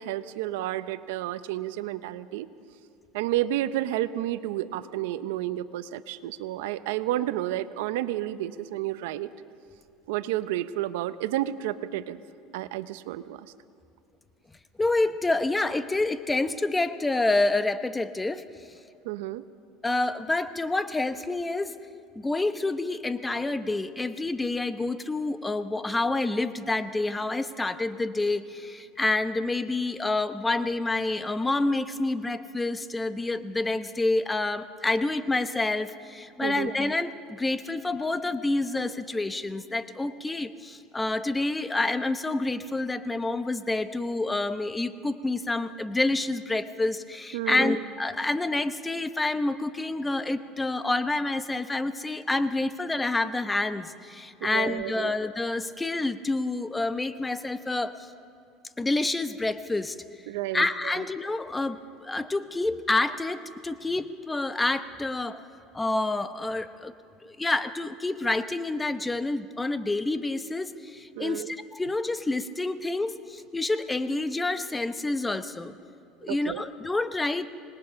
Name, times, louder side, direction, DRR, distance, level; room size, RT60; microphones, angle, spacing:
voice 1, 0.0-2.5 3.1-9.3 10.1-12.2 12.5-13.5 19.0-19.4 36.4-36.7 47.3-47.8 54.4-55.1 60.3-61.0 71.2-71.5 76.3-76.6, right 14 dB, 85° right, 14 dB, 0.8 m, -31 dB
voice 2, 14.8-18.4 19.8-21.7 22.1-58.1 58.8-60.0 60.5-65.4 65.7-66.9 67.2-75.7 76.2-77.5, left 2 dB, 10° left, 11 dB, 0.9 m, -28 dB
25.5 x 20.5 x 5.8 m, 2.7 s
supercardioid pair, 120°, 0 cm